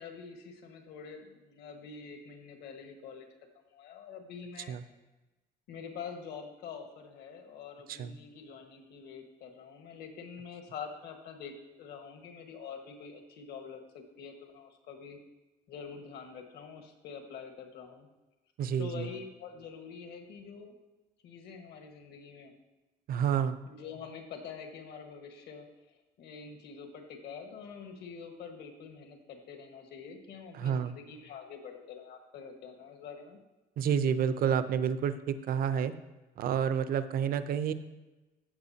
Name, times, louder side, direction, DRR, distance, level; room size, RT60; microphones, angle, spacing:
voice 1, 0.0-3.3 3.7-4.8 5.7-15.2 15.7-18.1 18.8-20.7 21.2-22.5 23.7-33.4, left 6 dB, 75° left, 4 dB, 1.5 m, -46 dB
voice 2, 18.6-19.1 23.1-23.6 30.5-31.0 33.8-35.9 36.4-37.7, right 8 dB, 60° right, 12 dB, 0.6 m, -29 dB
15.0 x 6.4 x 2.8 m, 1.1 s
cardioid pair, 110°, 17 cm